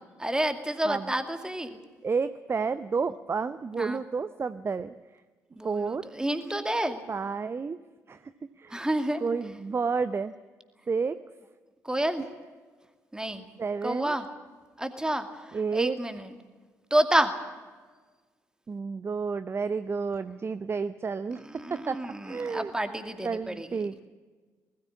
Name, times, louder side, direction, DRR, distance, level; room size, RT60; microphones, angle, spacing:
voice 1, 0.2-1.8 3.8-4.0 5.5-7.0 8.7-9.2 11.8-12.3 13.1-13.5 13.8-14.3 14.8-16.4 16.9-17.3 21.3-23.9, right 1 dB, 10° right, 8 dB, 2.3 m, -29 dB
voice 2, 2.0-4.9 5.6-6.1 7.1-7.8 8.1-8.2 8.6-8.8 9.2-10.3 10.9-11.2 13.6-14.1 15.5-16.0 18.7-22.7 23.2-24.1, right 5 dB, 30° right, 14 dB, 0.7 m, -30 dB
20.0 x 14.5 x 9.8 m, 1.4 s
figure-of-eight pair, 40°, 8 cm